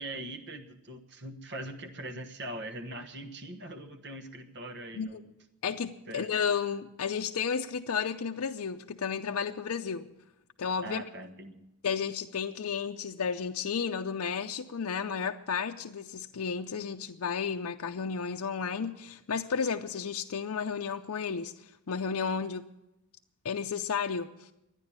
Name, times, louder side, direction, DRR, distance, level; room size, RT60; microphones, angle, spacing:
voice 1, 0.0-5.2 6.1-6.3 10.8-11.6, right 1 dB, 50° right, 6 dB, 1.3 m, -41 dB
voice 2, 5.6-10.1 10.6-11.0 11.8-22.7 23.4-24.5, left 6 dB, 70° left, 4 dB, 0.5 m, -32 dB
12.5 x 9.8 x 8.6 m, 0.90 s
head